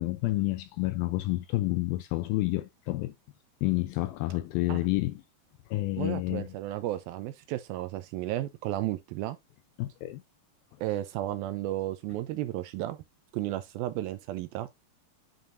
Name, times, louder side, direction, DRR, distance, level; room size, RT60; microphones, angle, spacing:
voice 1, 0.0-3.1 3.6-5.2 5.7-6.5 9.8-10.2, left 18 dB, 85° left, 2.1 m, -29 dB
voice 2, 6.0-9.4 10.8-13.0 13.3-14.9, right 14 dB, 80° right, 2.2 m, -33 dB
9.1 x 4.9 x 2.5 m
omnidirectional pair, 4.6 m